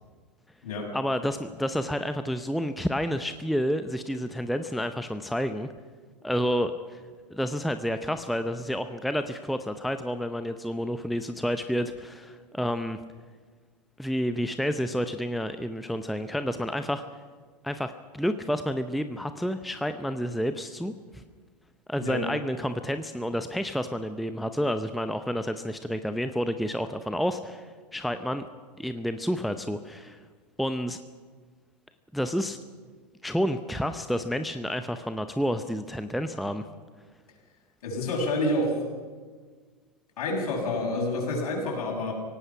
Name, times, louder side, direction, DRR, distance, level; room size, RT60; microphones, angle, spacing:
voice 1, 0.9-5.7 6.2-7.0 7.3-13.0 14.0-17.0 17.6-21.2 21.9-28.5 28.8-30.2 30.6-31.0 32.1-32.6 33.2-36.6, equal, ahead, 9 dB, 0.7 m, -30 dB
voice 2, 37.8-38.9 40.2-42.1, left 1 dB, 60° left, 1 dB, 7.1 m, -28 dB
25.0 x 17.5 x 5.9 m, 1.5 s
figure-of-eight pair, 100°, 21 cm